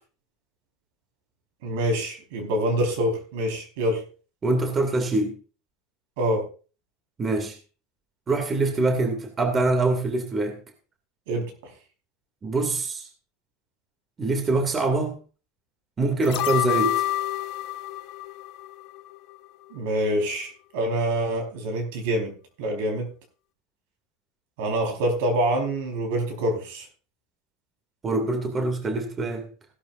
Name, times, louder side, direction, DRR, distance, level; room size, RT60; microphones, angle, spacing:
voice 1, 1.6-4.0 6.2-6.4 11.3-11.5 19.7-22.3 22.6-23.1 24.6-26.9, right 1 dB, 75° right, 4.5 m, -26 dB
voice 2, 4.4-5.3 7.2-7.6 8.3-10.6 12.4-13.1 14.2-15.2 16.0-17.1 28.0-29.5, right 2 dB, 25° right, 2.6 m, -24 dB
sound 1, 16.2-19.4 19.7-19.8, left 14 dB, 60° left, 1.4 m, -28 dB
16.5 x 11.5 x 2.6 m
supercardioid pair, 120°, 0 cm